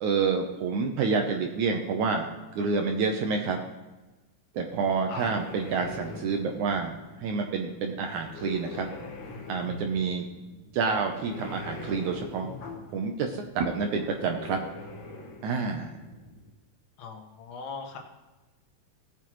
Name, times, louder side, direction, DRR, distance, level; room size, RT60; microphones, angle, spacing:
voice 1, 0.0-3.6 4.6-8.9 9.5-10.3 10.7-12.5 12.9-14.6 15.4-15.9, right 5 dB, 75° right, 3 dB, 1.9 m, -28 dB
sound 1, 4.7-16.5, left 2 dB, 55° left, 1.4 m, -43 dB
voice 2, 17.0-18.0, left 4 dB, 90° left, 2 dB, 3.4 m, -38 dB
17.5 x 8.2 x 3.1 m, 1.1 s
omnidirectional pair, 4.2 m